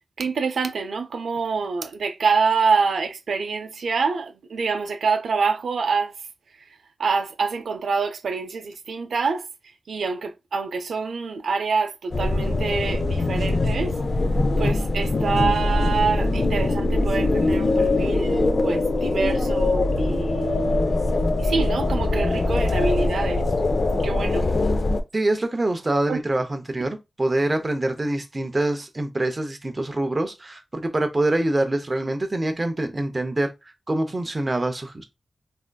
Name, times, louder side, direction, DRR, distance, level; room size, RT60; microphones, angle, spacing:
voice 1, 0.2-6.3 6.6-6.7 7.0-13.9 14.6-20.9 21.4-23.4 24.0-24.5 26.1-26.2, right 5 dB, 85° right, 0.4 m, -26 dB
sound 1, 12.1-25.0, left 2 dB, 40° left, 0.4 m, -22 dB
voice 2, 25.1-33.5 33.9-35.0, right 2 dB, 25° right, 0.5 m, -25 dB
3.4 x 2.4 x 2.2 m
wide cardioid pair, 135°, 0 cm